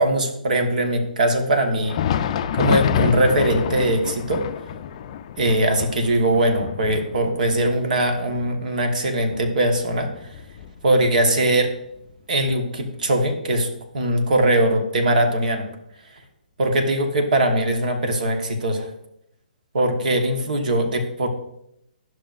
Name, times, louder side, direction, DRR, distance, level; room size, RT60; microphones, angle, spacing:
voice 1, 0.0-2.0 2.6-4.4 5.4-10.4 10.8-11.7 12.3-13.7 13.9-15.7 16.6-18.9 19.7-21.3, right 1 dB, 65° right, 4 dB, 1.3 m, -21 dB
Thunder, 1.7-11.2 11.5-11.7 12.4-12.5 13.5-13.6, left 9 dB, 45° left, 0.4 m, -28 dB
11.0 x 6.1 x 2.5 m, 0.79 s
figure-of-eight pair, 130°, 5 cm